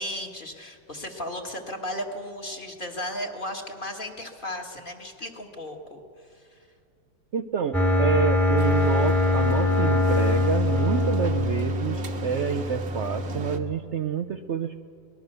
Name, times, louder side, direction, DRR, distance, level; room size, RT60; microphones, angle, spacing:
voice 1, 0.0-6.0 6.3-6.4, left 1 dB, 30° left, 2 dB, 1.8 m, -35 dB
voice 2, 7.3-14.8, right 7 dB, 80° right, 8 dB, 0.6 m, -28 dB
sound 1, 7.7-13.7, left 1 dB, ahead, 1.4 m, -23 dB
sound 2, 8.6-13.6, right 4 dB, 40° right, 1.2 m, -39 dB
23.5 x 20.0 x 6.7 m, 2.3 s
omnidirectional pair, 2.0 m